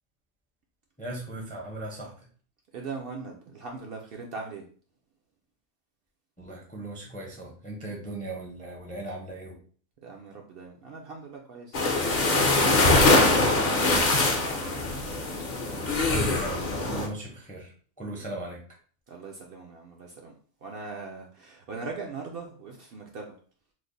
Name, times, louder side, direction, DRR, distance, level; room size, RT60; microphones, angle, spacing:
voice 1, 1.0-2.3 6.4-9.6 14.7-14.9 16.0-17.7 18.0-18.6, right 2 dB, 10° left, -1 dB, 0.4 m, -38 dB
voice 2, 2.7-4.6 10.0-14.6 19.1-20.3 20.6-23.4, right 4 dB, 60° right, 1 dB, 0.6 m, -41 dB
sound 1, 11.7-17.1, left 2 dB, 50° left, 0.6 m, -23 dB
3.2 x 2.1 x 3.8 m, 0.44 s
omnidirectional pair, 1.3 m